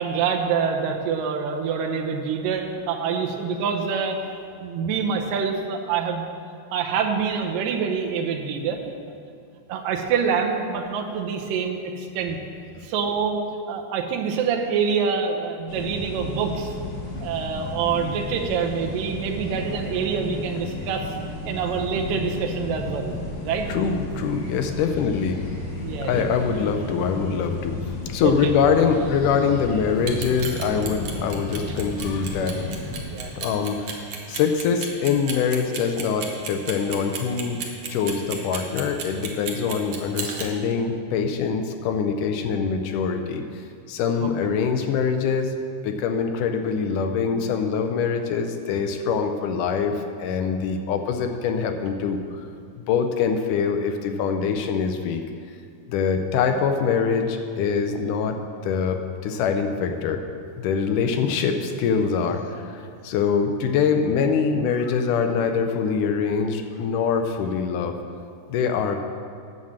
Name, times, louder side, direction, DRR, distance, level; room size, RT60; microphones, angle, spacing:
voice 1, 0.0-6.3 6.7-8.8 9.7-12.4 12.8-13.4 13.7-16.7 17.2-21.1 21.5-23.1 23.4-23.7 25.8-26.3 28.2-28.5 33.0-33.3 34.3-34.4 44.2-44.3, right 6 dB, 80° right, 2 dB, 2.5 m, -26 dB
sound 1, 15.7-33.0, left 2 dB, 45° left, 2.7 m, -33 dB
voice 2, 23.7-25.4 26.0-27.8 28.1-32.6 33.3-37.6 37.9-43.4 43.9-45.5 45.8-52.2 52.8-55.2 55.9-58.4 58.6-60.2 60.6-68.0 68.5-69.0, left 6 dB, 80° left, 6 dB, 2.0 m, -24 dB
Clock, 30.0-40.5, right 6 dB, 60° right, 1.6 m, -33 dB
9.4 x 6.5 x 7.4 m, 2.4 s
omnidirectional pair, 3.9 m